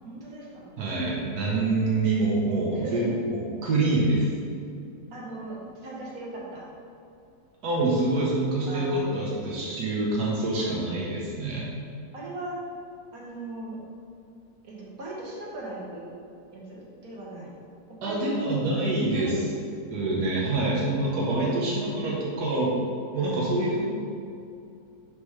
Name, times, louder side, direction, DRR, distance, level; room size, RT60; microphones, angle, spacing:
voice 1, 0.0-0.7 2.7-3.2 5.1-6.6 8.7-9.7 10.6-10.8 12.1-12.6 13.1-13.8 14.6-16.1 16.5-17.5 17.9-18.5 19.1-19.5, right 2 dB, 65° right, -4 dB, 1.7 m, -39 dB
voice 2, 0.8-4.3 7.6-11.7 18.0-19.3 19.9-22.7 23.1-23.8, right 2 dB, 85° right, -5 dB, 1.7 m, -26 dB
9.4 x 3.7 x 3.3 m, 2.5 s
omnidirectional pair, 1.7 m